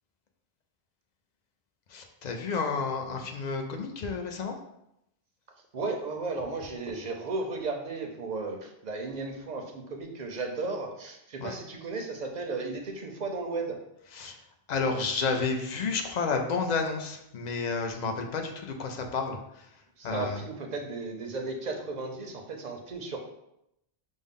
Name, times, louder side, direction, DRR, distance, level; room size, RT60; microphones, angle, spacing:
voice 1, 1.9-4.6 11.4-11.6 14.1-14.4 14.7-19.7 20.0-20.5, left 4 dB, 55° left, 4 dB, 0.5 m, -31 dB
voice 2, 5.7-13.8 20.0-23.2, right 3 dB, 55° right, 3 dB, 0.6 m, -35 dB
5.2 x 2.0 x 3.6 m, 0.81 s
omnidirectional pair, 1.0 m